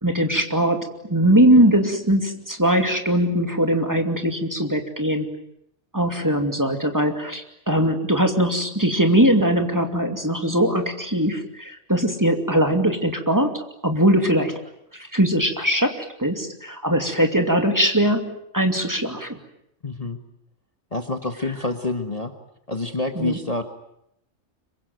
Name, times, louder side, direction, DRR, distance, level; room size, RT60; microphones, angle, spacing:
voice 1, 0.0-5.3 5.9-14.6 14.9-19.4 23.2-23.4, equal, 15° right, 5 dB, 2.6 m, -21 dB
voice 2, 19.8-20.2 20.9-22.3 22.7-23.6, left 2 dB, 30° left, 6 dB, 1.6 m, -27 dB
26.0 x 24.0 x 9.4 m, 0.76 s
omnidirectional pair, 1.2 m